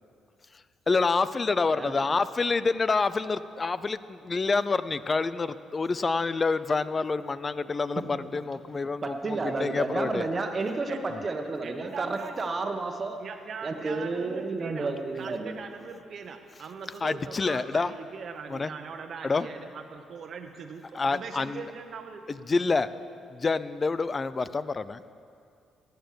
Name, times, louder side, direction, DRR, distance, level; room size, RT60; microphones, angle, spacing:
voice 1, 0.9-10.3 11.1-11.2 17.0-17.9 18.5-18.7 19.2-19.5 20.9-21.6 22.5-22.9 23.3-25.2, left 4 dB, 30° left, 15 dB, 0.5 m, -27 dB
voice 2, 9.0-13.2 13.6-15.5, right 3 dB, 35° right, 5 dB, 1.4 m, -31 dB
voice 3, 10.9-12.4 13.2-14.9 15.2-22.2, right 5 dB, 55° right, 5 dB, 1.1 m, -41 dB
15.5 x 9.2 x 7.0 m, 2.4 s
cardioid pair, 90°, 0 cm